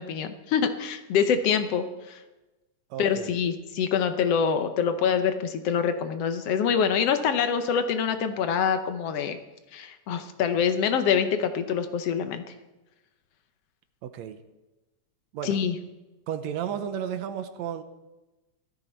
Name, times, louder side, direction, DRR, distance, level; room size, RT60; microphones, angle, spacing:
voice 1, 0.0-2.2 3.0-9.4 9.7-12.4 15.4-15.8, left 7 dB, 65° left, 9 dB, 1.7 m, -25 dB
voice 2, 2.9-3.3 14.0-14.4 15.3-15.6 16.3-17.8, right 9 dB, 75° right, 10 dB, 2.0 m, -33 dB
16.5 x 13.5 x 4.5 m, 1.1 s
omnidirectional pair, 3.5 m